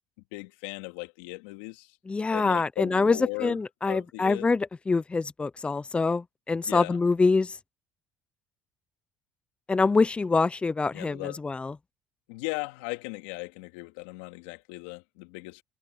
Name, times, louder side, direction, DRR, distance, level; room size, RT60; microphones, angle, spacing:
voice 1, 0.3-1.9 2.3-3.6 3.9-4.5 6.6-7.0 10.9-11.4 12.3-15.6, left 25 dB, 80° left, 2.7 m, -37 dB
voice 2, 2.1-7.5 9.7-11.7, left 4 dB, 20° left, 0.8 m, -25 dB
hypercardioid pair, 65°, 5 cm